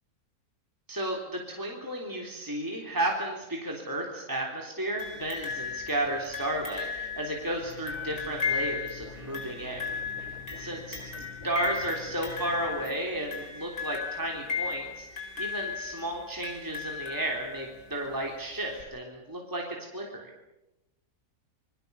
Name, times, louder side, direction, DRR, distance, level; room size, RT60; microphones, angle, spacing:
voice 1, 0.9-11.0 11.4-20.3, right 1 dB, 15° right, -1 dB, 3.5 m, -33 dB
sound 1, 5.0-17.8 18.8-18.9, left 5 dB, 85° left, 5.1 m, -36 dB
sound 2, 7.6-12.9, left 4 dB, 20° left, 4.3 m, -47 dB
27.5 x 23.0 x 7.1 m, 0.94 s
omnidirectional pair, 1.6 m